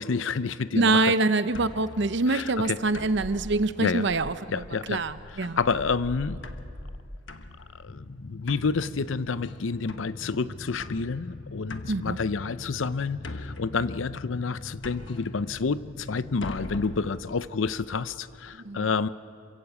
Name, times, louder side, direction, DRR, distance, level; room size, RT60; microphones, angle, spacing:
voice 1, 0.0-1.0 2.3-2.8 3.8-4.0 4.5-5.0 5.4-6.4 7.8-19.1, left 4 dB, 90° left, 15 dB, 0.6 m, -29 dB
voice 2, 0.7-5.6 11.8-12.2 18.5-18.9, right 3 dB, 65° right, 13 dB, 0.8 m, -25 dB
sound 1, 1.5-18.4, left 2 dB, 70° left, 1.2 m, -43 dB
sound 2, 7.9-16.4, left 3 dB, 40° left, 0.7 m, -43 dB
27.0 x 16.0 x 8.2 m, 2.5 s
head